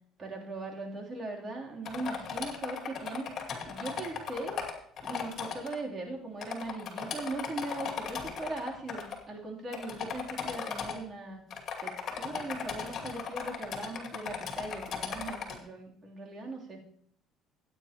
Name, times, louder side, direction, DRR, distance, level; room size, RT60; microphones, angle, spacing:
voice 1, 0.2-4.6 5.0-11.4 11.8-16.8, right 2 dB, 35° right, -1 dB, 3.3 m, -39 dB
sound 1, 1.9-5.8 6.4-9.2 9.7-11.0 11.5-15.6, left 7 dB, 50° left, 2.4 m, -37 dB
15.5 x 9.0 x 3.0 m, 0.67 s
supercardioid pair, 100°, 0 cm